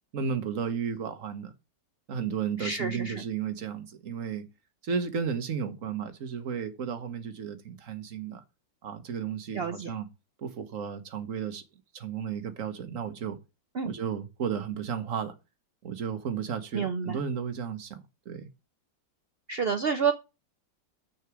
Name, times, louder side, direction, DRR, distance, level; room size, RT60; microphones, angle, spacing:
voice 1, 0.1-1.5 2.1-4.4 4.8-8.4 8.8-10.1 10.4-11.6 11.9-13.4 13.8-15.3 15.8-18.5, right 7 dB, 50° right, 1.4 m, -33 dB
voice 2, 2.6-3.2 9.5-9.9 13.8-13.9 16.7-17.2 19.5-20.1, right 6 dB, 85° right, 0.5 m, -29 dB
6.4 x 5.8 x 6.2 m
omnidirectional pair, 1.9 m